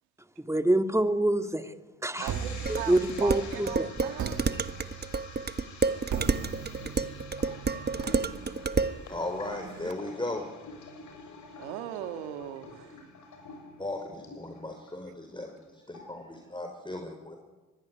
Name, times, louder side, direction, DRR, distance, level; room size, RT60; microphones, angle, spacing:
voice 1, 0.4-1.7 2.0-2.3 2.7-3.9, right 1 dB, 10° right, 8 dB, 2.3 m, -26 dB
sound 1, 2.2-14.9 15.3-15.6 15.9-16.3, left 4 dB, 70° left, 7.3 m, -47 dB
sound 2, 2.2-3.6 4.2-9.9, right 8 dB, 70° right, 2.1 m, -40 dB
voice 2, 2.2-4.4 11.6-13.0, right 11 dB, 90° right, 8 dB, 1.8 m, -39 dB
Dishes pots and pans, 2.7-9.0, right 4 dB, 30° right, 1.4 m, -30 dB
voice 3, 9.1-10.5 13.8-17.4, left 2 dB, 15° left, 4 dB, 4.9 m, -36 dB
25.0 x 21.0 x 9.8 m, 1.3 s
hypercardioid pair, 45°, 32 cm